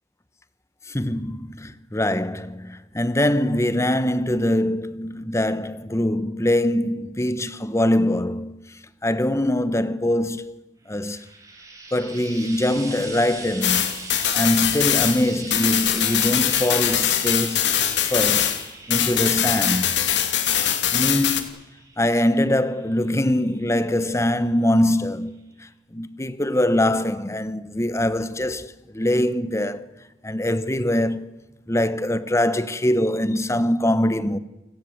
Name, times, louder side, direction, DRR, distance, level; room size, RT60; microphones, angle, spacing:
voice 1, 0.9-8.6 9.0-10.5 10.9-11.2 11.9-17.8 18.1-18.5 18.9-20.0 20.6-21.4 22.0-25.4 25.9-29.9 30.2-31.3 31.7-34.4, left 1 dB, 15° left, 1.1 m, -23 dB
Frying (food), 10.9-24.3 25.3-25.4, right 3 dB, 20° right, 5.3 m, -41 dB
sound 1, 13.6-18.7 18.9-21.4, left 10 dB, 80° left, 2.6 m, -22 dB
29.0 x 19.0 x 8.1 m
head